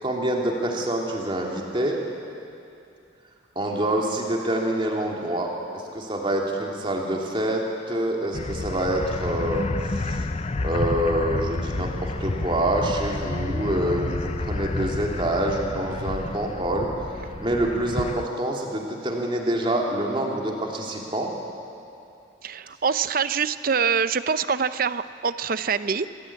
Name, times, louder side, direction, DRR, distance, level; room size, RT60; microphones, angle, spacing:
voice 1, 0.0-2.0 3.5-10.2 10.6-16.9 17.4-21.3, right 1 dB, 25° right, -1 dB, 3.0 m, -26 dB
sound 1, 8.3-18.3, left 2 dB, 30° left, 0.5 m, -30 dB
voice 2, 22.4-26.1, right 6 dB, 45° right, 13 dB, 0.6 m, -25 dB
25.0 x 16.5 x 8.7 m, 2.6 s
head